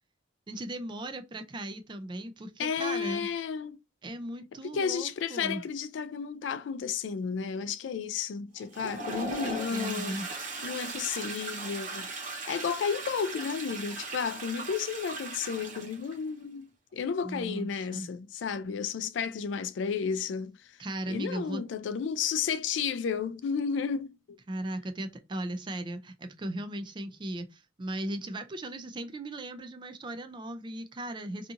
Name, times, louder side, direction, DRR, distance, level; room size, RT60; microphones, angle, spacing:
voice 1, 0.5-3.3 4.0-5.6 9.2-10.3 17.2-18.1 20.8-21.6 24.5-31.5, right 1 dB, 25° right, 0.4 m, -37 dB
voice 2, 2.6-3.8 4.7-10.2 10.6-12.1 12.5-20.5 21.1-24.1, left 6 dB, 80° left, 0.3 m, -32 dB
Toilet flush, 8.6-16.2, right 3 dB, 45° right, 0.9 m, -38 dB
2.7 x 2.6 x 2.4 m
head